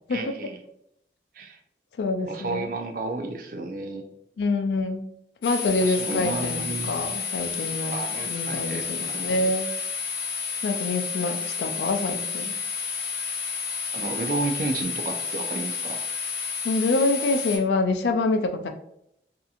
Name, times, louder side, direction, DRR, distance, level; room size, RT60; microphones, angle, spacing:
voice 1, 0.1-0.6 1.4-1.6 2.3-4.0 5.8-7.2 7.9-9.5 13.9-16.0, right 3 dB, 50° right, 5 dB, 0.3 m, -32 dB
voice 2, 2.0-2.7 4.4-5.1 5.4-7.9 8.2-9.7 10.6-12.5 16.6-18.7, left 2 dB, 80° left, 6 dB, 0.3 m, -26 dB
sound 1, 5.4-17.6, left 6 dB, 50° left, 1.0 m, -31 dB
2.7 x 2.5 x 2.3 m, 0.77 s
head